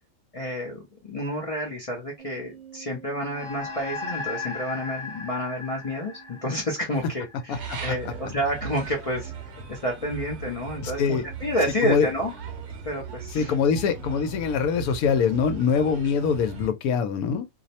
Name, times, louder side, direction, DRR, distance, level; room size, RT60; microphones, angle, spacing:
voice 1, 0.3-9.3 9.7-12.3 12.8-13.5, equal, 60° left, 0.3 m, -29 dB
sound 1, 2.2-9.2, right 10 dB, 35° right, 0.6 m, -51 dB
sound 2, 3.3-8.0, left 4 dB, 25° left, 0.8 m, -37 dB
sound 3, 7.5-16.7, right 6 dB, 55° right, 0.9 m, -38 dB
voice 2, 10.8-11.2 11.8-12.1 13.3-17.4, left 6 dB, 85° left, 1.1 m, -23 dB
2.6 x 2.0 x 2.7 m
omnidirectional pair, 1.5 m